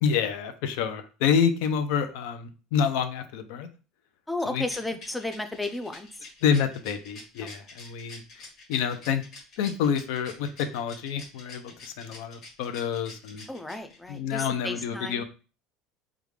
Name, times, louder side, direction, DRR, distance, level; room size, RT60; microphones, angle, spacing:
voice 1, 0.0-3.7 4.5-4.6 6.4-9.2 9.6-13.5 14.1-15.2, left 7 dB, 70° left, 9 dB, 0.5 m, -28 dB
voice 2, 4.3-6.1 13.5-15.2, left 2 dB, 5° left, 7 dB, 0.3 m, -33 dB
Rattle, 4.6-14.2, left 3 dB, 40° left, 1.6 m, -47 dB
3.6 x 2.3 x 3.2 m, 0.35 s
cardioid pair, 165°, 0 cm